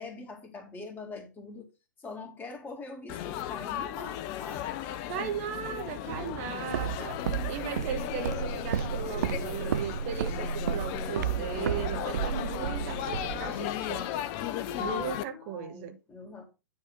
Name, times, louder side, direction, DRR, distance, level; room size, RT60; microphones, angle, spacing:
voice 1, 0.0-1.7 2.0-4.7 15.1-16.4, left 3 dB, 15° left, 2.1 m, -43 dB
Laughter / Chatter / Crowd, 3.1-15.2, left 11 dB, 35° left, 0.7 m, -35 dB
voice 2, 5.1-14.1 14.8-16.0, right 8 dB, 40° right, 1.2 m, -37 dB
Walk footsteps, 6.1-14.0, right 9 dB, 60° right, 0.4 m, -33 dB
9.7 x 3.5 x 6.1 m
figure-of-eight pair, 110°, 11 cm